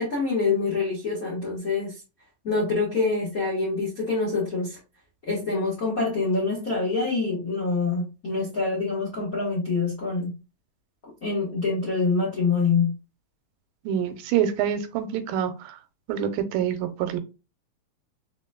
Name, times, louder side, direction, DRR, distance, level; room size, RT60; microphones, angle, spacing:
voice 1, 0.0-2.0 2.4-4.8 5.3-10.3 11.2-12.9, left 4 dB, 85° left, 0.7 m, -25 dB
voice 2, 13.9-15.8 16.1-17.2, right 9 dB, 90° right, 2.4 m, -26 dB
4.7 x 3.9 x 2.2 m
omnidirectional pair, 4.0 m